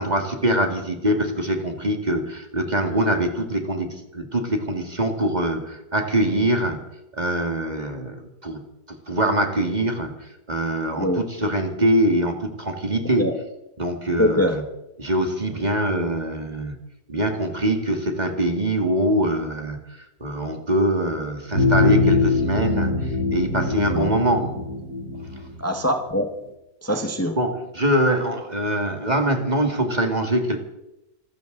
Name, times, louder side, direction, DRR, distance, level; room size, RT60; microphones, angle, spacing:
voice 1, 0.0-6.8 7.1-8.6 8.9-10.1 10.5-13.3 13.8-14.6 15.0-16.8 17.1-24.5 27.4-30.6, right 1 dB, 25° right, 4 dB, 2.2 m, -23 dB
voice 2, 14.2-14.6 23.9-24.1 25.6-26.3 26.8-27.4, left 1 dB, 10° left, 4 dB, 1.4 m, -23 dB
sound 1, 21.5-26.0, left 3 dB, 70° right, 5.1 m, -22 dB
26.0 x 14.0 x 4.0 m, 0.90 s
omnidirectional pair, 1.7 m